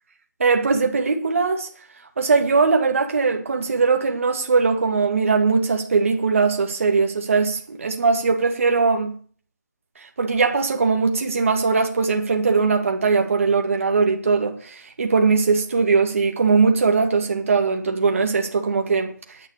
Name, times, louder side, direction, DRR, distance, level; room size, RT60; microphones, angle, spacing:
voice 1, 0.4-1.7 2.2-9.1 10.2-19.1, right 4 dB, 45° right, 2.3 m, -20 dB
10.5 x 8.2 x 8.4 m
figure-of-eight pair, 170°, 10 cm